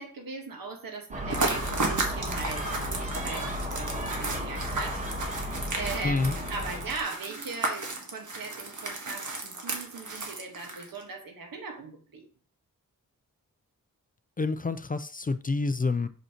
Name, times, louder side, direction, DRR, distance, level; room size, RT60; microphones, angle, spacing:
voice 1, 0.0-12.3, right 4 dB, 90° right, 1.4 m, -39 dB
Gull seagull, 1.1-7.0, equal, 20° right, 1.2 m, -34 dB
sound 1, 1.3-11.0, right 3 dB, 60° right, 1.4 m, -34 dB
voice 2, 6.0-6.3 14.4-16.1, left 3 dB, 25° left, 0.4 m, -28 dB
6.2 x 5.4 x 2.9 m
wide cardioid pair, 85°, 34 cm